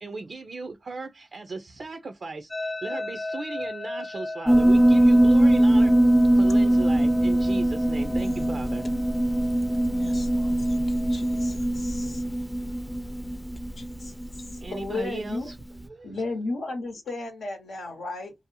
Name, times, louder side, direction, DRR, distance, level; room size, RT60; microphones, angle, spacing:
voice 1, 0.0-5.9 6.3-8.8 14.6-16.2, right 3 dB, 60° right, 0.4 m, -37 dB
sound 1, 2.5-11.5, left 2 dB, 30° left, 0.7 m, -38 dB
Piano, 4.5-15.2, right 1 dB, ahead, 0.4 m, -21 dB
voice 2, 8.2-8.6 9.9-12.2 13.8-14.1, left 4 dB, 55° left, 0.6 m, -44 dB
voice 3, 14.7-15.5 16.0-18.3, left 3 dB, 90° left, 0.8 m, -32 dB
2.7 x 2.0 x 2.5 m
cardioid pair, 50°, 0 cm